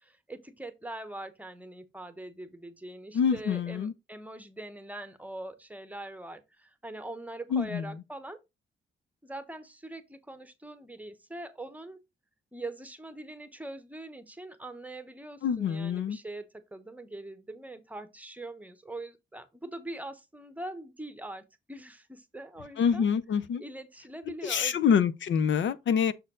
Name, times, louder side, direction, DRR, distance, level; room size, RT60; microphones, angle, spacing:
voice 1, 0.0-8.4 9.2-12.0 12.5-23.1 23.6-24.8, right 2 dB, 5° right, 0.9 m, -42 dB
voice 2, 3.1-3.9 7.5-7.9 15.4-16.2 22.8-23.6 24.4-26.1, left 7 dB, 70° left, 0.6 m, -26 dB
6.8 x 4.3 x 3.7 m
cardioid pair, 110°, 20 cm